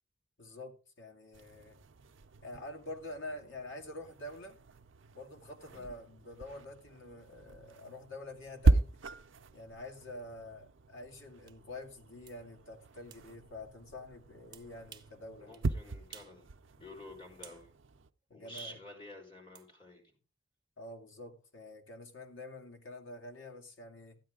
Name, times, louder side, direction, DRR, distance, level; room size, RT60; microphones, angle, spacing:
voice 1, 0.4-1.8 2.4-4.6 5.1-8.9 9.5-15.5 18.3-18.8 20.8-24.2, left 2 dB, 70° left, 2.2 m, -47 dB
sound 1, 1.3-18.1, right 3 dB, 70° right, 0.5 m, -37 dB
click fingers, 11.5-11.6 12.3-12.4 13.1-13.3 14.5-15.2 15.5-15.7 16.1-16.4 16.7-17.7 18.6-18.7 19.5-19.7, right 8 dB, 20° right, 0.9 m, -54 dB
voice 2, 15.4-16.5 16.7-17.7 18.3-20.0, left 1 dB, 25° left, 4.1 m, -50 dB
13.5 x 9.4 x 3.7 m
head